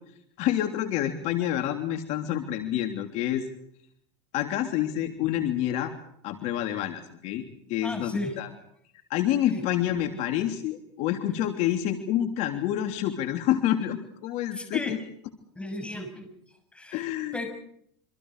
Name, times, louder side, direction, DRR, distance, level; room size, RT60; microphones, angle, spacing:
voice 1, 0.4-3.4 4.3-5.9 6.2-7.4 7.7-8.5 9.1-15.0 16.9-17.4, left 11 dB, 50° left, 6 dB, 3.2 m, -28 dB
voice 2, 7.8-8.4 9.5-9.6 14.5-15.0 15.5-16.3 16.7-17.5, left 1 dB, 5° left, 6 dB, 6.5 m, -35 dB
27.5 x 26.0 x 4.9 m, 0.70 s
supercardioid pair, 130°, 15 cm